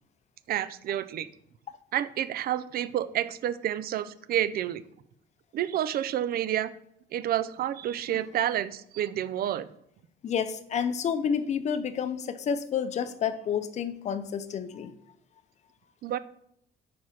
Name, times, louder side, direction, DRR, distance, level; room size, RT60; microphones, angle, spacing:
voice 1, 0.5-1.3 1.9-4.8 5.5-6.7 7.1-9.7 16.0-16.2, right 11 dB, 55° right, 15 dB, 0.4 m, -29 dB
voice 2, 10.2-14.9, left 7 dB, 40° left, 11 dB, 0.6 m, -30 dB
4.7 x 4.5 x 5.7 m, 0.72 s
cardioid pair, 130°, 19 cm